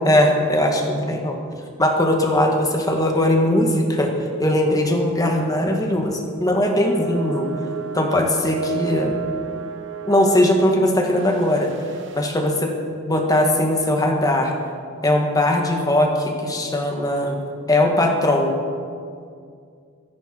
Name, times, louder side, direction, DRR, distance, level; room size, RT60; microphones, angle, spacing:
voice 1, 0.0-1.4 1.8-4.1 4.4-7.5 7.9-9.1 10.1-11.7 12.2-12.7 13.1-14.5 15.0-17.4 17.7-18.5, left 1 dB, 20° left, 2 dB, 1.9 m, -19 dB
sound 1, 4.8-5.6 5.9-6.1 6.8-12.3, right 7 dB, 65° right, 1.3 m, -33 dB
24.0 x 10.5 x 4.6 m, 2.2 s
head